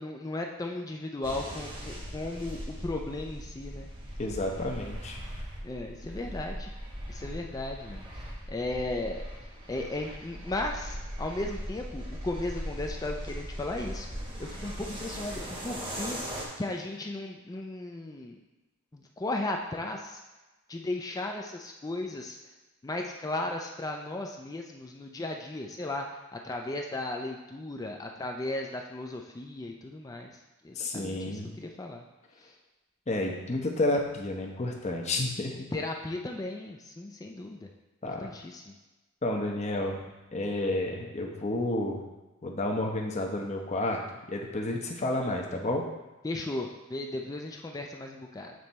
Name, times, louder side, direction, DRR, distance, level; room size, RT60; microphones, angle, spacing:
voice 1, 0.0-3.9 5.6-6.7 7.1-8.1 8.5-9.2 9.7-14.1 14.4-16.2 16.6-18.4 18.9-20.2 20.7-22.4 22.8-30.3 30.6-32.0 35.7-37.7 38.1-38.7 46.2-48.5, left 2 dB, 15° left, 2 dB, 0.4 m, -36 dB
sound 1, 1.2-16.5, equal, 25° right, 1.1 m, -39 dB
voice 2, 4.2-5.2 30.8-31.5 33.1-35.7 38.0-38.3 39.2-40.0 40.3-42.0 42.4-44.0 44.3-45.8, left 1 dB, 35° left, 1 dB, 0.8 m, -30 dB
7.6 x 3.3 x 4.1 m, 1.1 s
head